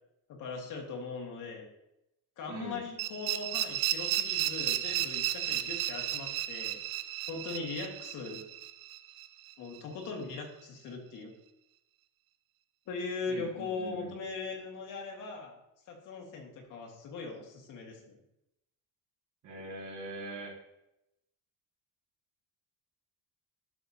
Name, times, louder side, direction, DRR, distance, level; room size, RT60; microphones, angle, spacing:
voice 1, 0.4-1.7 2.4-6.8 7.3-8.4 9.6-11.3 12.9-15.5 15.9-18.2, left 4 dB, 60° left, 1 dB, 1.8 m, -40 dB
voice 2, 2.5-2.8 13.3-14.2 19.4-20.6, right 2 dB, 55° right, -1 dB, 2.3 m, -42 dB
sound 1, 3.0-9.8, right 13 dB, 85° right, 0.6 m, -33 dB
11.5 x 5.7 x 2.8 m, 0.85 s
cardioid pair, 150°, 35 cm